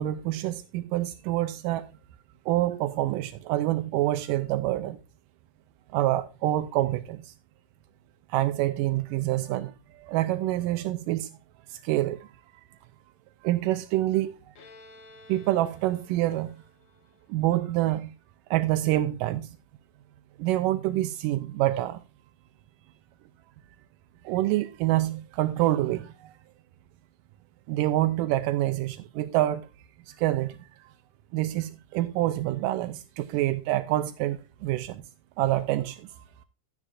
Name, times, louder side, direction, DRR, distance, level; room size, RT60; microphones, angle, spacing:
voice 1, 0.0-1.9 2.5-5.0 5.9-7.3 8.3-11.4 11.7-12.3 13.4-14.4 15.3-16.6 17.3-18.1 18.5-19.6 20.4-22.0 24.2-26.3 27.7-29.7 30.1-30.9 31.3-35.0 35.4-36.2, right 15 dB, 85° right, 2.2 m, -27 dB
Bowed string instrument, 14.6-18.1, left 2 dB, 60° left, 2.7 m, -54 dB
12.5 x 9.8 x 2.4 m
omnidirectional pair, 3.8 m